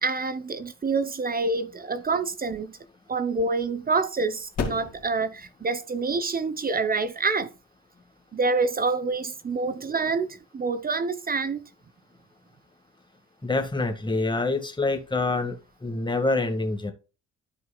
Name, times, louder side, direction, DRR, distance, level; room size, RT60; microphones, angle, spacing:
voice 1, 0.0-2.8 3.1-7.5 8.3-11.7, right 4 dB, 30° right, 0.8 m, -27 dB
sound 1, 2.4-9.2, left 4 dB, 55° left, 2.5 m, -40 dB
voice 2, 13.4-16.9, left 2 dB, 15° left, 1.9 m, -26 dB
13.0 x 4.7 x 2.4 m
cardioid pair, 90°, 30 cm